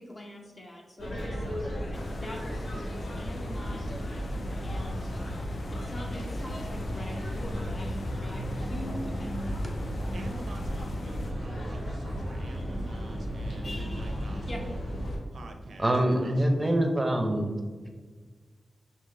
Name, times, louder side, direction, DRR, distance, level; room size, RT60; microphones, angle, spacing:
voice 1, 0.0-3.8 4.6-5.1 5.7-9.7 14.5-14.6, left 1 dB, 35° left, 1 dB, 0.8 m, -43 dB
sound 1, 1.0-15.2, equal, 70° left, 1.3 m, -34 dB
sound 2, 1.9-11.3, left 2 dB, 55° left, 0.3 m, -42 dB
voice 2, 10.1-14.8 15.3-16.5, right 2 dB, 70° right, 5 dB, 0.5 m, -46 dB
voice 3, 15.8-17.5, right 1 dB, 10° right, 3 dB, 0.6 m, -25 dB
5.5 x 2.8 x 3.2 m, 1.5 s
wide cardioid pair, 110°, 0 cm